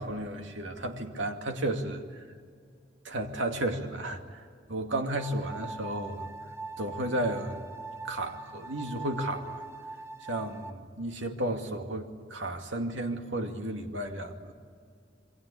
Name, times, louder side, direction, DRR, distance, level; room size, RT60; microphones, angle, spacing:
voice 1, 0.0-2.2 3.0-4.2 4.7-6.3 6.8-7.7 8.0-9.6 10.2-14.5, right 1 dB, 80° right, 5 dB, 2.4 m, -33 dB
sound 1, 5.1-10.7, right 3 dB, 15° right, 0.9 m, -42 dB
28.5 x 23.0 x 8.6 m, 2.1 s
head